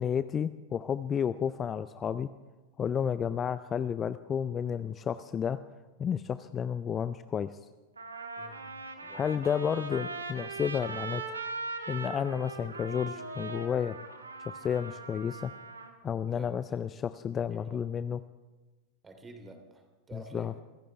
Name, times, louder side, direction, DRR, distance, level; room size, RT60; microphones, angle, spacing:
voice 1, 0.0-2.3 2.8-5.6 6.0-7.5 9.1-11.4 11.9-13.9 14.5-15.5 16.0-18.2 20.1-20.5, left 8 dB, 25° left, 14 dB, 0.4 m, -31 dB
Trumpet, 7.2-7.3 8.0-15.9, right 3 dB, 75° right, 1.7 m, -40 dB
voice 2, 8.4-8.7 9.0-9.7 16.3-16.5 17.5-17.8 19.0-20.5, right 2 dB, 15° right, 6 dB, 2.9 m, -50 dB
26.5 x 15.0 x 3.4 m, 1.2 s
figure-of-eight pair, 90°, 0 cm